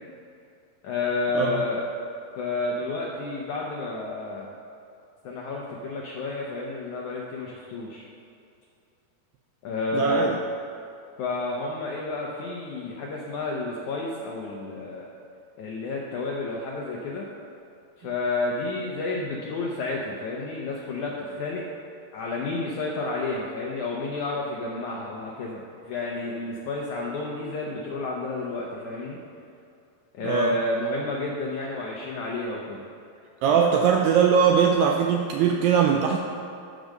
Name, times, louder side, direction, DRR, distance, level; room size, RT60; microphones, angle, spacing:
voice 1, 0.8-1.9 2.4-4.5 5.2-8.0 9.6-10.3 11.2-15.0 15.6-17.3 18.0-21.6 22.1-29.2 30.1-32.8, left 2 dB, 90° left, -3 dB, 1.6 m, -30 dB
voice 2, 9.9-10.4 30.2-30.6 33.4-36.2, right 7 dB, 85° right, 2 dB, 2.0 m, -21 dB
12.5 x 5.1 x 6.5 m, 2.6 s
omnidirectional pair, 4.7 m